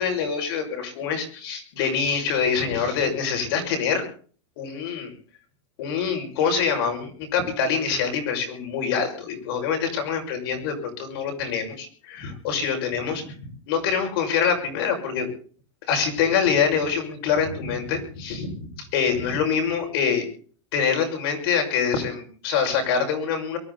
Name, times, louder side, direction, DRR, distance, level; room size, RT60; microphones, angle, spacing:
voice 1, 0.0-4.0 4.6-5.1 5.8-15.3 15.9-20.3 20.7-23.6, left 6 dB, 55° left, 3 dB, 6.0 m, -25 dB
23.5 x 13.0 x 4.1 m, 0.42 s
supercardioid pair, 165°, 15 cm